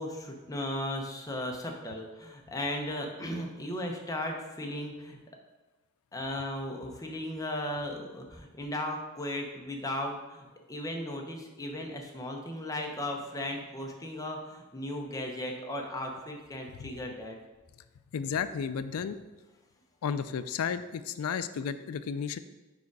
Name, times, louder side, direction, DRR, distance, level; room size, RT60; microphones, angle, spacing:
voice 1, 0.0-5.2 6.1-17.4, left 1 dB, 15° left, 1 dB, 0.7 m, -36 dB
voice 2, 18.1-19.2 20.0-22.4, left 7 dB, 80° left, 13 dB, 0.4 m, -33 dB
4.9 x 4.9 x 4.6 m, 1.2 s
head